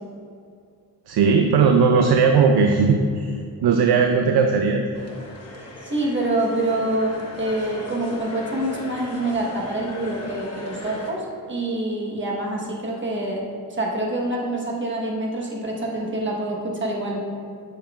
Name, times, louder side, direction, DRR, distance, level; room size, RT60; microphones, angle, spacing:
voice 1, 1.1-3.3 3.6-4.8, right 5 dB, 75° right, 4 dB, 0.5 m, -18 dB
sound 1, 4.9-11.1, left 1 dB, 40° left, 1.0 m, -37 dB
voice 2, 5.8-13.4 13.7-17.2, right 1 dB, 30° right, -2 dB, 1.2 m, -26 dB
7.8 x 7.0 x 2.4 m, 2.3 s
wide cardioid pair, 135°, 39 cm